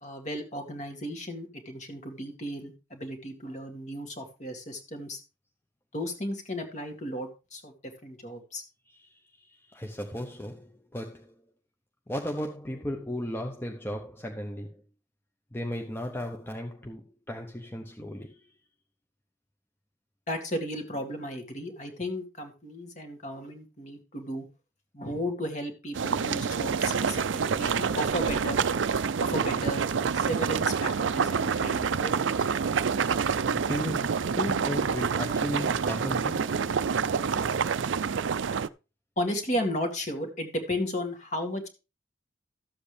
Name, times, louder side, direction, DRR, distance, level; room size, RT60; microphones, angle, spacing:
voice 1, 0.0-5.2 5.9-8.6 20.3-24.5 24.9-28.6 29.2-29.8 30.1-32.5 39.2-41.7, left 1 dB, 40° left, 2.0 m, -34 dB
voice 2, 8.9-11.4 12.1-14.8 15.5-18.5 33.2-36.6, left 1 dB, 10° left, 0.8 m, -36 dB
sound 1, 25.9-38.7, right 6 dB, 75° right, 0.5 m, -27 dB
13.0 x 7.8 x 3.4 m
head